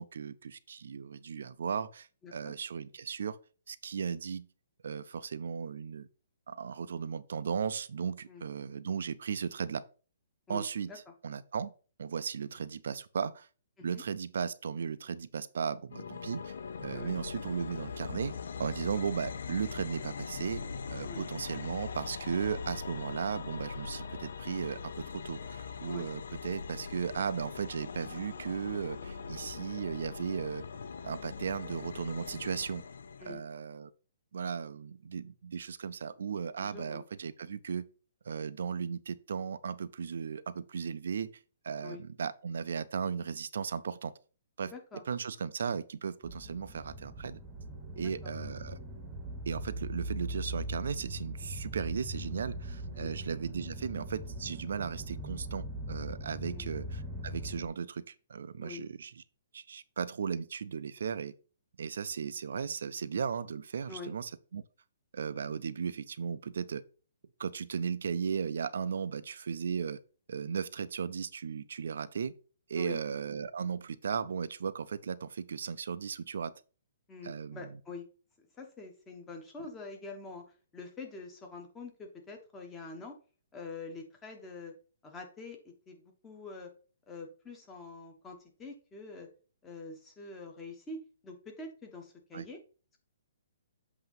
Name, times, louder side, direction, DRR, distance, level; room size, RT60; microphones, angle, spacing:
voice 1, 0.0-3.4 3.7-4.5 4.8-6.1 6.5-9.8 10.5-10.9 11.2-11.7 12.0-13.5 13.8-16.5 16.8-18.3 18.6-20.6 20.9-30.6 31.0-32.8 33.2-33.9 34.3-37.8 38.3-41.3 41.6-44.1 44.6-44.7 45.1-47.4 48.0-48.8 49.5-59.2 59.5-61.3 61.8-64.6 65.1-66.8 67.4-70.0 70.3-72.3 72.7-76.5 77.2-77.7 92.3-92.4, right 6 dB, 70° right, 0.5 m, -36 dB
voice 2, 2.2-2.5 8.3-8.5 10.5-11.1 13.8-14.0 16.9-17.2 21.0-21.2 25.9-26.1 33.2-33.4 36.6-37.0 41.8-42.0 44.6-45.0 48.0-48.3 53.0-53.1 56.4-56.7 58.6-58.9 63.9-64.1 72.7-73.0 77.1-78.1 78.6-80.4 80.7-83.2 83.5-84.7 85.0-86.7 87.1-89.3 89.6-92.6, left 3 dB, 10° left, 1.1 m, -46 dB
sound 1, 15.9-33.3, left 5 dB, 75° left, 0.6 m, -41 dB
sound 2, 46.2-57.7, right 1 dB, 10° right, 1.1 m, -40 dB
7.9 x 2.8 x 5.3 m
hypercardioid pair, 165°, 0 cm